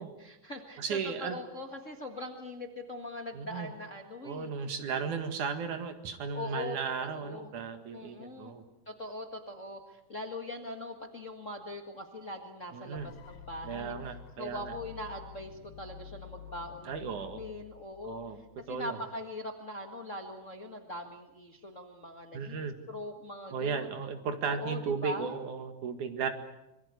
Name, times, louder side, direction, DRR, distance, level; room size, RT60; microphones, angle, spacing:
voice 1, 0.2-4.5 6.3-7.5 7.9-8.5 8.8-14.0 14.4-18.2 18.6-22.6 22.9-23.9 24.5-25.3, left 1 dB, 30° left, 3 dB, 1.4 m, -41 dB
voice 2, 0.8-1.4 3.3-3.7 4.2-8.6 12.7-13.1 13.6-14.7 16.9-17.4 18.0-18.4 18.7-19.0 22.3-22.8 23.5-26.3, right 6 dB, 70° right, 7 dB, 3.3 m, -35 dB
sound 1, 13.0-18.9, left 9 dB, 85° left, 2.9 m, -50 dB
25.5 x 22.5 x 8.3 m, 0.92 s
omnidirectional pair, 3.8 m